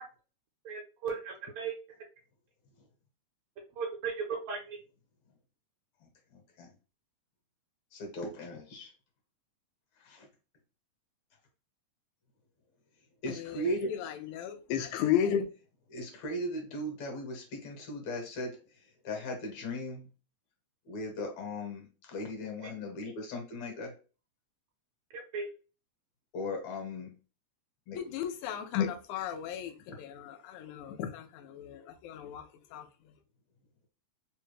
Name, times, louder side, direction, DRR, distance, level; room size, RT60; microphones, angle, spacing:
voice 1, 0.7-1.7 3.8-4.8 25.1-25.5, right 5 dB, 75° right, 1.9 m, -36 dB
voice 2, 6.0-6.7 7.9-8.9 10.0-10.3 13.2-13.9 15.9-20.1 20.9-23.9 26.3-27.1 27.9-28.0, left 1 dB, 70° left, 2.2 m, -38 dB
voice 3, 13.3-15.5 27.9-33.1, left 9 dB, 90° left, 2.0 m, -34 dB
4.9 x 2.2 x 3.1 m
omnidirectional pair, 3.4 m